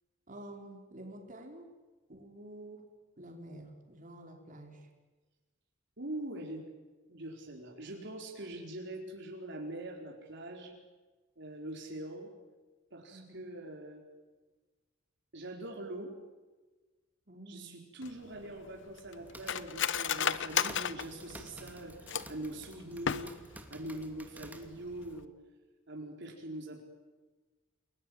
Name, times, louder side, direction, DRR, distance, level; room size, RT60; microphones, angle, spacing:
voice 1, 0.3-1.7 2.1-2.8 3.2-4.9 13.1-13.5 17.3-17.7, right 1 dB, 45° right, 2 dB, 4.8 m, -49 dB
voice 2, 6.0-6.7 7.1-10.8 11.4-12.3 12.9-14.0 15.3-16.1 17.5-25.3 25.9-26.8, right 1 dB, 65° right, 1 dB, 4.5 m, -43 dB
Cutlery silverware, 18.0-22.5 22.9-23.6 24.0-24.1 24.4-24.7 25.1-25.3, left 8 dB, 65° left, 1.0 m, -34 dB
sound 1, 19.0-25.2, right 1 dB, 10° right, 2.6 m, -52 dB
29.5 x 21.0 x 9.6 m, 1.3 s
head